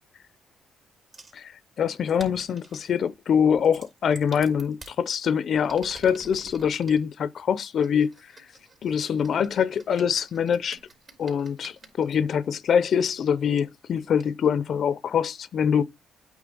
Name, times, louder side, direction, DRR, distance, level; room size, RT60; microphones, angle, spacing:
sound 1, 1.1-1.4 2.1-2.9 3.6-5.0 5.5-7.0 7.8-12.2 13.0-13.1 13.6-13.7 14.2-14.3, right 3 dB, 45° right, 2.8 m, -48 dB
voice 1, 1.3-8.3 8.8-10.8 11.2-15.8, left 7 dB, 60° left, 0.5 m, -24 dB
8.6 x 3.2 x 5.3 m
cardioid pair, 90°, 0 cm